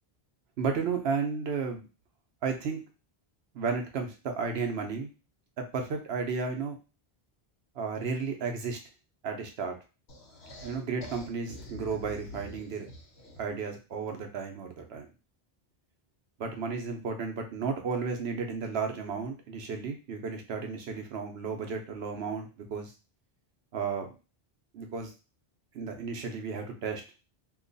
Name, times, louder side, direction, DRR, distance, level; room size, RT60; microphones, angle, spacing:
voice 1, 0.6-1.9 2.4-2.8 3.5-5.1 5.6-6.8 7.7-8.8 9.2-9.8 10.6-12.9 13.4-15.1 16.4-22.9 23.7-24.1 24.7-25.1 25.7-27.0, right 5 dB, 75° right, 4 dB, 1.0 m, -33 dB
sound 1, 10.1-13.6, left 1 dB, 85° left, 1.1 m, -45 dB
2.9 x 2.3 x 3.8 m, 0.31 s
omnidirectional pair, 1.1 m